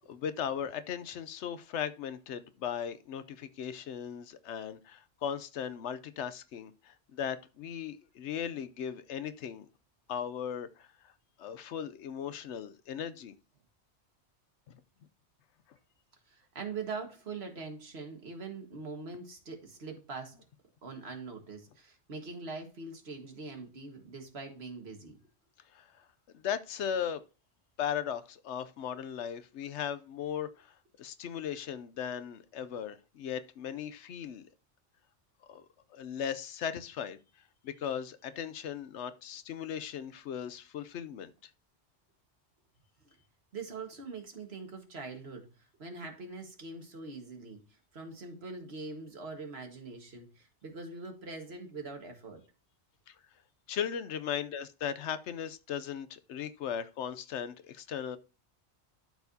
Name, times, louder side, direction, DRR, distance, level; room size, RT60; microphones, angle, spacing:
voice 1, 0.1-9.7 10.1-11.1 11.4-13.3 14.7-14.8 25.7-26.1 26.3-27.2 27.8-34.5 35.5-35.6 35.9-37.2 37.6-41.3 53.1-53.2 53.7-58.2, left 8 dB, 75° left, 0.9 m, -37 dB
voice 2, 16.3-20.4 20.8-25.1 43.5-45.5 45.8-47.6 47.9-52.4, right 4 dB, 60° right, 1.8 m, -43 dB
12.0 x 4.7 x 2.7 m
omnidirectional pair, 1.2 m